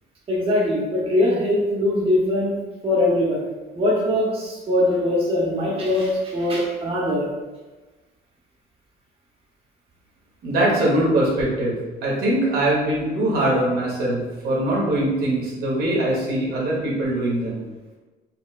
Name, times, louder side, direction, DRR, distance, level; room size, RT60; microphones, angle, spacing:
voice 1, 0.3-3.4 3.7-7.3, left 1 dB, 35° right, -5 dB, 0.9 m, -21 dB
voice 2, 10.4-11.7 12.0-17.6, right 1 dB, 70° right, -4 dB, 1.1 m, -22 dB
4.2 x 2.1 x 2.4 m, 1.2 s
cardioid pair, 110°, 17 cm